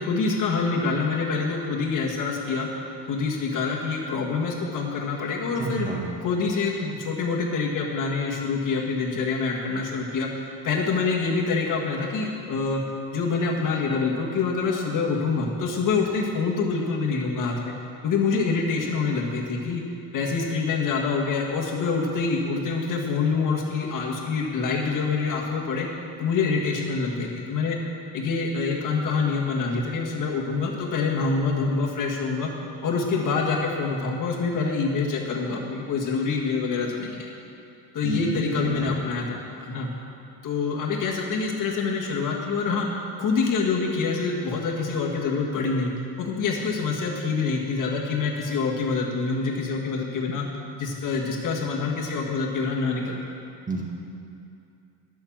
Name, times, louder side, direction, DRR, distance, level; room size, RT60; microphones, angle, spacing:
voice 1, 0.0-2.7 3.1-5.9 6.2-10.3 10.6-12.8 13.1-17.7 18.0-19.8 20.1-25.9 26.2-27.8 28.1-32.5 32.8-37.3 37.9-39.9 40.4-42.9 43.2-45.9 46.2-50.5 50.8-53.2, left 4 dB, 50° left, -1 dB, 1.6 m, -26 dB
voice 2, 5.6-6.1 38.0-38.9 53.7-53.8, right 3 dB, 20° right, -2 dB, 1.8 m, -30 dB
11.0 x 7.1 x 7.3 m, 2.6 s
cardioid pair, 140°, 41 cm